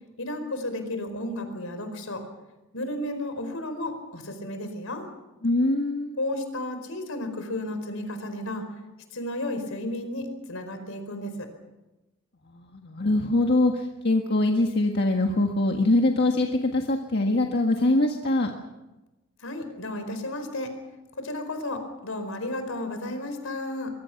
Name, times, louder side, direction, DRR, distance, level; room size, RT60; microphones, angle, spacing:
voice 1, 0.2-2.2 2.7-5.1 6.2-8.7 9.1-11.5 19.4-20.7 21.2-23.9, left 1 dB, 70° left, 7 dB, 4.7 m, -33 dB
voice 2, 5.4-6.1 12.5-18.5, left 2 dB, 50° left, 2 dB, 1.6 m, -23 dB
24.5 x 23.5 x 6.0 m, 1.1 s
head